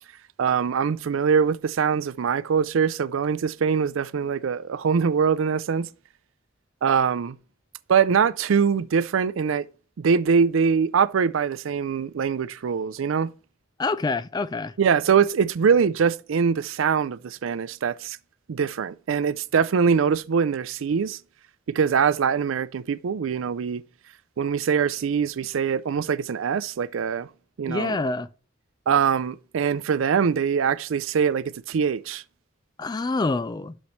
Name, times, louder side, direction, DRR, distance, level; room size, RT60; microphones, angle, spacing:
voice 1, 0.4-5.9 6.8-7.4 7.9-9.7 10.0-13.3 14.8-18.2 18.5-21.2 21.7-23.8 24.4-27.3 27.6-28.0 28.9-32.2, right 6 dB, 90° right, 0.4 m, -23 dB
voice 2, 13.8-14.7 27.7-28.3 32.8-33.7, left 3 dB, 20° left, 0.3 m, -26 dB
9.9 x 6.5 x 3.1 m
head